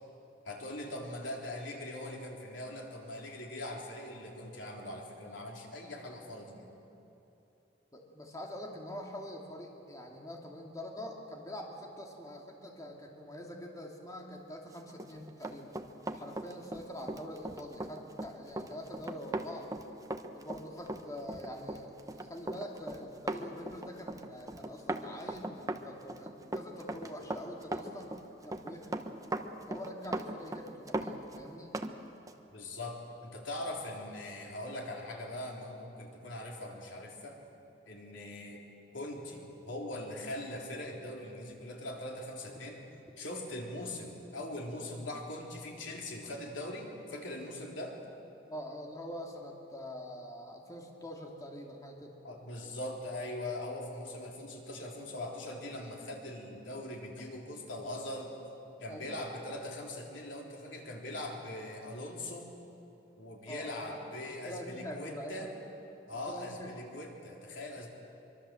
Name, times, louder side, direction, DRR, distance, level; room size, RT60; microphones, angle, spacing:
voice 1, 0.5-6.7 32.5-37.4 37.9-38.6 38.9-42.8 43.2-48.0 52.2-58.3 58.8-62.5 63.2-65.5 66.1-67.9, left 1 dB, 90° left, 0 dB, 3.8 m, -41 dB
voice 2, 7.9-15.7 16.1-19.7 20.3-28.2 28.4-29.0 29.7-31.7 48.5-52.2 58.9-59.3 63.5-64.1 64.4-65.5 66.3-66.7, equal, 20° left, 0 dB, 2.3 m, -45 dB
Run, 14.9-31.9 32.3-32.4, right 1 dB, 20° right, 1.0 m, -39 dB
24.0 x 24.0 x 7.7 m, 3.0 s
head